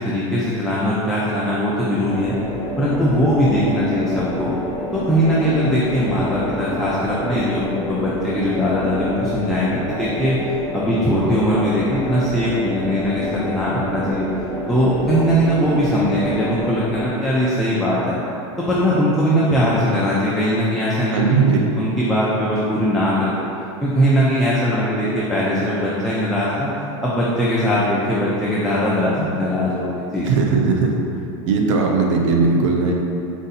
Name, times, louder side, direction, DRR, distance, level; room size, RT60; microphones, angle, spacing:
voice 1, 0.0-2.4 2.8-4.5 4.9-10.4 10.7-14.3 14.7-18.2 18.6-21.4 21.8-23.4 23.8-26.7 27.0-30.2, equal, ahead, -8 dB, 0.3 m, -20 dB
sound 1, 2.0-17.1, equal, 25° left, 1.0 m, -28 dB
voice 2, 21.1-21.7 30.2-31.0 31.5-32.9, right 4 dB, 75° right, 1 dB, 0.7 m, -18 dB
4.6 x 2.6 x 4.0 m, 2.8 s
supercardioid pair, 160°, 16 cm